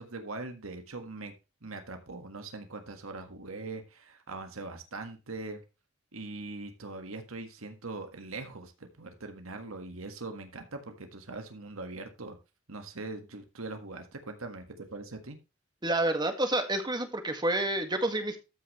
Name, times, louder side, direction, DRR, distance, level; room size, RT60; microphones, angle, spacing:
voice 1, 0.0-1.3 1.6-5.6 6.1-12.4 12.7-15.4, right 3 dB, 85° right, 6 dB, 1.6 m, -41 dB
voice 2, 15.8-18.4, right 1 dB, 20° right, 7 dB, 1.8 m, -29 dB
14.0 x 6.4 x 3.1 m, 0.28 s
head